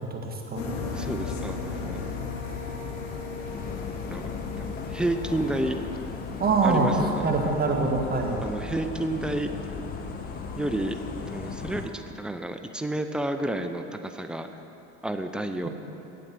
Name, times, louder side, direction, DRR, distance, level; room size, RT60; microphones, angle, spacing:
voice 1, 0.1-0.7 6.4-8.4 15.6-15.7, right 3 dB, 25° right, 1 dB, 1.7 m, -24 dB
sound 1, 0.6-11.9, left 4 dB, 80° left, 1.3 m, -37 dB
voice 2, 0.9-2.0 4.1-4.3 4.6-5.8 6.6-7.3 8.4-9.5 10.5-11.0 11.3-14.5 15.0-15.7, right 1 dB, ahead, 7 dB, 0.5 m, -30 dB
sound 2, 3.5-11.8, left 4 dB, 25° left, 0.8 m, -37 dB
8.7 x 7.7 x 6.9 m, 3.0 s
hypercardioid pair, 85°, 37 cm